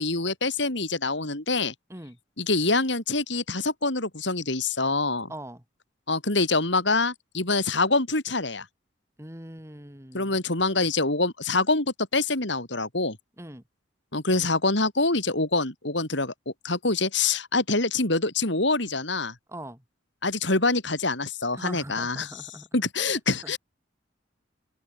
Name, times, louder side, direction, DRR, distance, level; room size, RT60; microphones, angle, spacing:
voice 1, 0.0-1.7 2.4-5.3 6.1-8.6 10.1-13.2 14.1-16.3 16.6-19.3 20.2-22.4 22.7-23.6, left 3 dB, 65° left, 4.5 m, -25 dB
voice 2, 5.3-5.6 9.2-10.3 13.4-13.6 19.5-19.8 21.5-23.5, right 1 dB, 15° right, 4.0 m, -41 dB
head